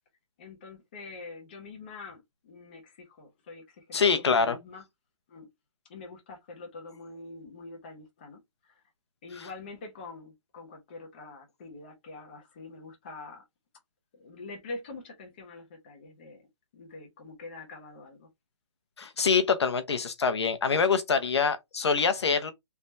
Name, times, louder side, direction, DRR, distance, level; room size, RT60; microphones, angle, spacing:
voice 1, 0.4-4.8 5.3-5.5 5.9-8.8 9.2-13.4 14.1-16.5 16.7-18.3, left 3 dB, 20° left, 0.7 m, -45 dB
voice 2, 3.9-4.6 9.4-9.5 19.0-22.5, left 5 dB, 60° left, 0.7 m, -25 dB
3.4 x 2.7 x 3.1 m
hypercardioid pair, 175°, 16 cm